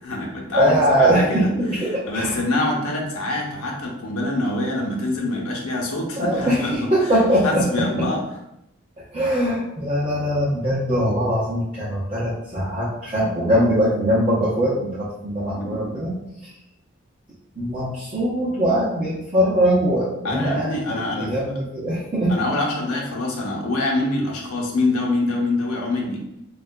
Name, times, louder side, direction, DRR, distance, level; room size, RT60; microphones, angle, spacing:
voice 1, 0.0-1.5 2.1-6.8 7.4-8.2 15.5-15.9 20.2-21.3 22.3-26.2, left 2 dB, 80° left, -1 dB, 0.8 m, -25 dB
voice 2, 0.5-2.4 6.2-7.9 9.1-16.2 16.4-16.5 17.6-22.4, equal, 25° right, -9 dB, 0.7 m, -21 dB
4.5 x 2.4 x 2.2 m, 0.84 s
head